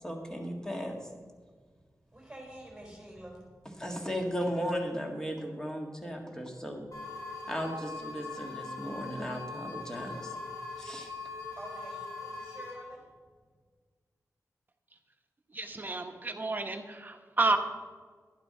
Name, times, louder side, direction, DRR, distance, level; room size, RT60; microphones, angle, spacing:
voice 1, 0.0-1.1 3.8-6.8 7.5-10.4 10.8-11.1, equal, 10° left, 1 dB, 1.8 m, -36 dB
voice 2, 2.1-3.9 11.3-13.1, right 1 dB, 5° right, -1 dB, 4.3 m, -48 dB
sound 1, 6.9-12.7, left 3 dB, 60° left, 4.2 m, -41 dB
voice 3, 15.5-17.6, right 3 dB, 30° right, 5 dB, 1.1 m, -30 dB
11.5 x 11.0 x 4.3 m, 1.5 s
wide cardioid pair, 115°, 6 cm